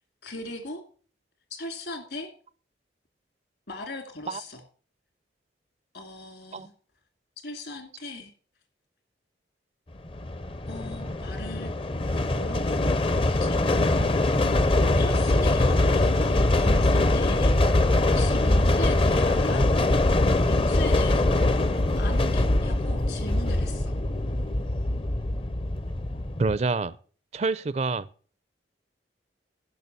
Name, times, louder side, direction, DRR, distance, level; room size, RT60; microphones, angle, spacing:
voice 1, 0.2-0.8 1.5-2.3 3.7-4.6 5.9-6.7 7.4-8.3 10.7-11.7 12.3-14.1 14.9-17.9 18.1-19.7 20.5-21.7 22.0-23.9, left 2 dB, 65° left, 6 dB, 2.6 m, -38 dB
sound 1, 10.1-26.6, left 2 dB, 30° left, 0.6 m, -23 dB
voice 2, 26.4-27.0 27.3-28.1, right 3 dB, 35° right, 18 dB, 0.4 m, -27 dB
11.0 x 6.2 x 6.8 m, 0.41 s
head